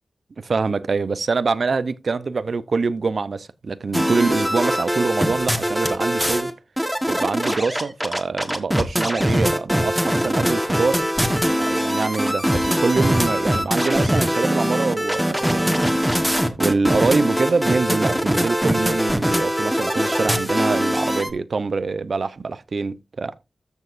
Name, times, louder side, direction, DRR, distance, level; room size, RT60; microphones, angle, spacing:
voice 1, 0.4-6.5 7.1-11.0 11.6-15.9 16.6-23.3, right 4 dB, 60° right, 0.6 m, -24 dB
sound 1, 3.9-6.5 6.8-21.3, equal, 5° right, 1.3 m, -22 dB
13.5 x 6.3 x 2.5 m
wide cardioid pair, 95°, 0 cm